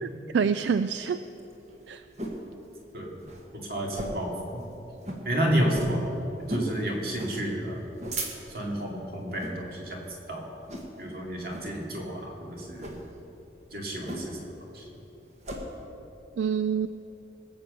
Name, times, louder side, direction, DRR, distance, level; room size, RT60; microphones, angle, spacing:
voice 1, 0.0-1.2 1.9-2.0 16.4-16.9, right 6 dB, 80° right, 11 dB, 0.4 m, -27 dB
sound 1, 1.2-2.5 2.8-2.9 3.2-3.4 3.9-4.3 4.7-4.8 5.0-5.2 5.7-6.0 6.5-6.7 7.1-7.4 7.8-8.7 9.3-9.6 10.0-10.3 10.7-11.1 11.5-11.7 12.7-13.0 14.1-14.5 14.8-15.6, right 1 dB, 40° right, 1.5 m, -36 dB
voice 2, 3.7-4.6 5.2-6.1 6.5-7.8 8.5-10.0 10.3-10.5 11.0-12.9 13.7-14.4 14.7-14.8, right 1 dB, 55° right, -1 dB, 2.6 m, -30 dB
20.5 x 7.6 x 6.7 m, 3.0 s
head